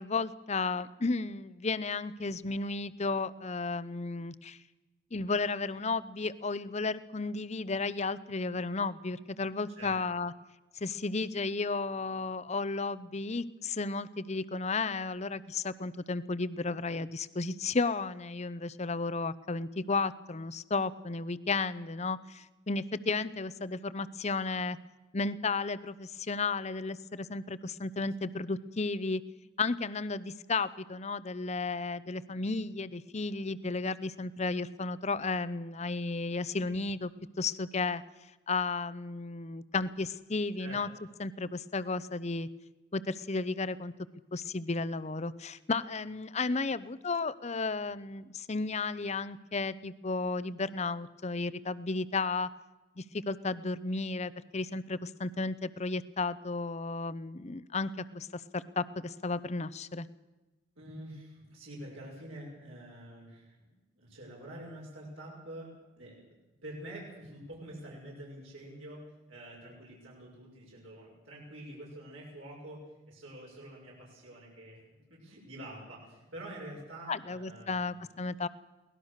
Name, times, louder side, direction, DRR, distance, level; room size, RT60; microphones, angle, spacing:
voice 1, 0.0-4.6 5.1-10.3 10.8-24.8 25.1-29.2 29.6-37.1 37.4-38.0 38.5-40.9 41.2-42.5 42.9-43.9 44.3-52.5 53.0-60.1 77.1-78.5, left 3 dB, 30° left, 16 dB, 0.7 m, -33 dB
voice 2, 60.8-65.7 66.0-66.2 66.6-74.8 75.1-78.1, right 1 dB, 70° right, -4 dB, 6.2 m, -47 dB
23.0 x 19.0 x 6.6 m, 1.1 s
head